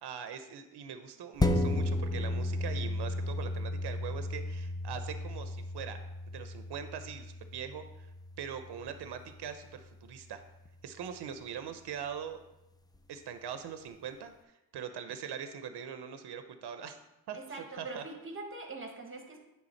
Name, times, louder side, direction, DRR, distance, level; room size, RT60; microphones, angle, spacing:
voice 1, 0.0-6.0 6.3-8.1 8.4-10.4 10.8-12.4 13.1-17.0 17.3-18.0, right 8 dB, 90° right, 8 dB, 0.6 m, -42 dB
sound 1, 1.4-10.2 10.7-10.8, left 1 dB, 10° left, 0.3 m, -34 dB
voice 2, 17.3-19.4, right 3 dB, 30° right, 2 dB, 1.2 m, -43 dB
8.9 x 3.4 x 4.4 m, 0.94 s
wide cardioid pair, 120°, 39 cm